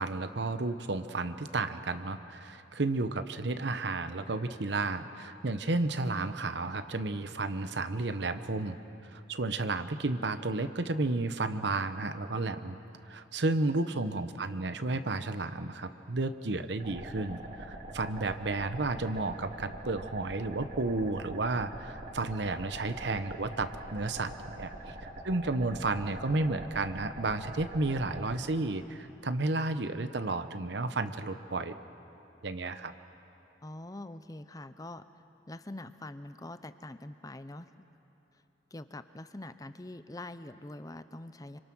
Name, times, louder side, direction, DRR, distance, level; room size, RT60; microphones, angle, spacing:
voice 1, 0.0-8.8 9.1-12.8 13.1-24.9 25.2-31.7 32.4-32.9, right 2 dB, 70° right, 10 dB, 1.0 m, -32 dB
voice 2, 13.9-14.4 24.8-24.9 33.6-35.0 35.5-37.7 38.7-41.6, left 1 dB, 20° left, 12 dB, 0.7 m, -44 dB
sound 1, 16.8-28.4, right 1 dB, 55° right, 3.3 m, -44 dB
27.0 x 25.5 x 6.2 m, 3.0 s
head